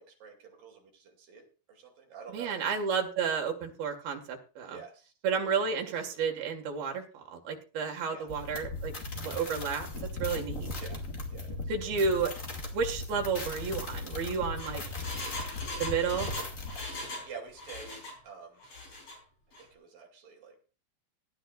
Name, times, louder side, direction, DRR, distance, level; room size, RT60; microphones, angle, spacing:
voice 1, 0.0-2.6 4.6-5.1 5.6-6.4 8.0-8.3 10.8-12.2 17.0-18.6 19.6-20.6, right 6 dB, 70° right, 2 dB, 4.3 m, -49 dB
voice 2, 2.3-4.8 5.2-8.9 9.2-9.9 10.2-10.7 11.7-12.3 12.7-14.8 15.8-16.3, right 5 dB, 90° right, 3 dB, 3.9 m, -31 dB
sound 1, 8.3-16.8, left 2 dB, 25° left, 2.3 m, -38 dB
Engine, 14.3-17.3 17.6-18.2 18.6-19.2 19.5-19.6, left 2 dB, 40° left, 5.5 m, -40 dB
18.0 x 12.0 x 2.6 m, 0.34 s
omnidirectional pair, 4.1 m